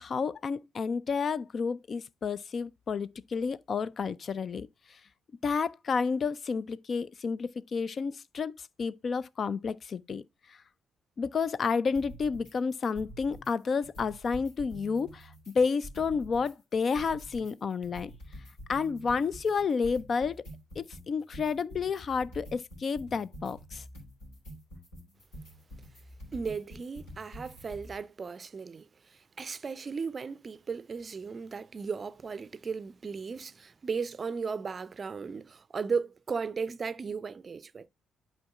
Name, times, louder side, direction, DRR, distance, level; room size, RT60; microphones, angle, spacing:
voice 1, 0.0-5.0 5.4-10.2 10.5-10.6 11.2-18.1 18.7-20.4 20.8-23.8, left 5 dB, 45° left, 0.3 m, -31 dB
Game lobby screen background music, 11.9-12.5 12.8-13.5 13.8-16.5 16.8-28.0, equal, 80° left, 3.2 m, -47 dB
voice 2, 26.3-37.9, right 5 dB, 40° right, 0.4 m, -36 dB
11.5 x 4.5 x 2.4 m
hypercardioid pair, 45°, 0 cm